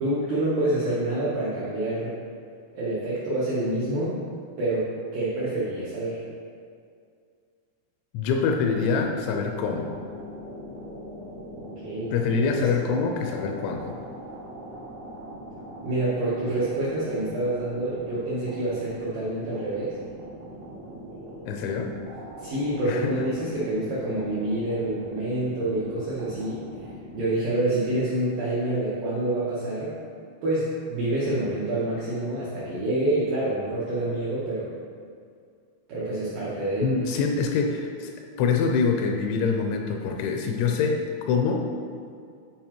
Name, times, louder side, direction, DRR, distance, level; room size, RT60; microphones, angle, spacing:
voice 1, 0.0-2.1 2.7-4.2 4.6-6.2 11.8-12.7 15.8-20.0 22.4-26.6 27.1-30.0 30.4-34.7 35.9-36.9, right 1 dB, 90° right, -8 dB, 1.9 m, -27 dB
voice 2, 8.1-9.9 12.1-13.9 21.5-21.9 22.9-23.1 36.8-41.7, left 5 dB, 85° left, 3 dB, 2.8 m, -25 dB
sound 1, 8.5-27.4, equal, 75° right, 1.6 m, -41 dB
9.4 x 4.9 x 2.9 m, 2.2 s
omnidirectional pair, 5.4 m